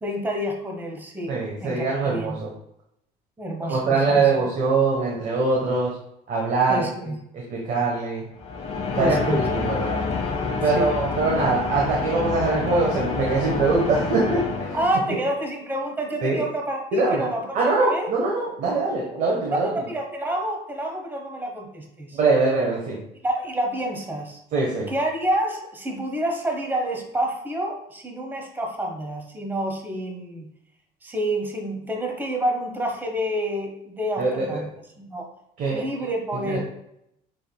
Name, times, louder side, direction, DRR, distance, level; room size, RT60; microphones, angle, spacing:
voice 1, 0.0-2.4 3.4-4.3 6.7-7.2 9.0-9.5 10.7-10.9 14.7-18.1 19.6-22.2 23.2-24.4 24.9-30.5 31.0-34.7 35.0-35.3 35.7-36.6, right 1 dB, 10° right, 2 dB, 0.9 m, -28 dB
voice 2, 1.3-2.5 3.7-6.0 6.3-8.2 8.9-10.0 10.6-14.8 15.1-15.2 16.2-16.4 16.9-17.2 17.5-19.7 22.1-23.0 24.5-24.9 34.2-34.6 35.6-35.8 36.3-36.6, right 3 dB, 55° right, -3 dB, 1.1 m, -23 dB
sound 1, 8.4-15.3, left 4 dB, 40° left, 0.9 m, -28 dB
6.8 x 3.4 x 2.2 m, 0.79 s
cardioid pair, 130°, 16 cm